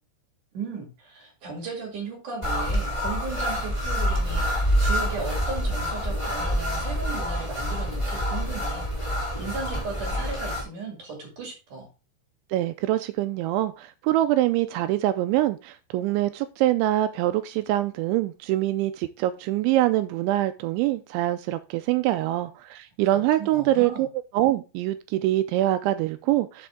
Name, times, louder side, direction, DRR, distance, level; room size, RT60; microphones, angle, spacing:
voice 1, 0.5-11.9 23.1-24.1, right 4 dB, 50° right, 3.0 m, -36 dB
sound 1, 2.4-10.6, equal, 10° left, 2.3 m, -27 dB
voice 2, 12.5-24.1 24.3-26.7, right 15 dB, 85° right, 2.7 m, -24 dB
7.6 x 6.9 x 3.7 m
omnidirectional pair, 5.7 m